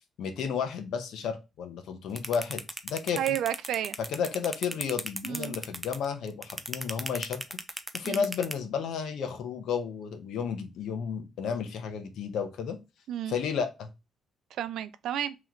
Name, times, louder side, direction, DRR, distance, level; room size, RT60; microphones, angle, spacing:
voice 1, 0.2-3.2 4.1-7.4 7.9-12.8 13.3-13.9, left 6 dB, 80° left, 0.8 m, -32 dB
sound 1, 2.2-8.5, right 1 dB, 5° right, 0.3 m, -35 dB
voice 2, 3.2-4.0 5.2-5.5 8.0-8.3 13.1-13.4 14.6-15.3, right 11 dB, 75° right, 0.4 m, -31 dB
3.0 x 3.0 x 3.7 m
cardioid pair, 160°, 0 cm